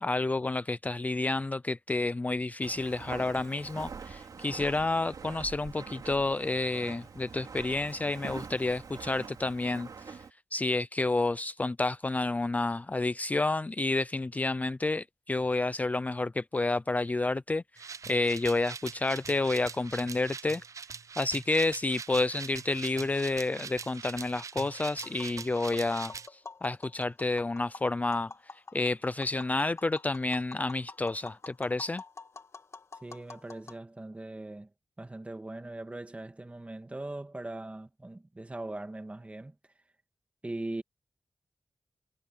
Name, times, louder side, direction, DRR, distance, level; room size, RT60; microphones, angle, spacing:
voice 1, 0.0-10.2 10.5-20.6 21.2-32.0, left 2 dB, 25° left, 0.4 m, -30 dB
Walk footsteps, 2.6-10.3, right 5 dB, 90° right, 3.3 m, -44 dB
sound 1, 17.8-26.3, right 6 dB, 60° right, 0.4 m, -43 dB
Tap, 24.6-33.8, left 4 dB, 50° left, 2.3 m, -48 dB
voice 2, 33.0-34.7 35.0-39.5 40.4-40.8, right 2 dB, 20° right, 2.2 m, -40 dB
wide cardioid pair, 115°, 6 cm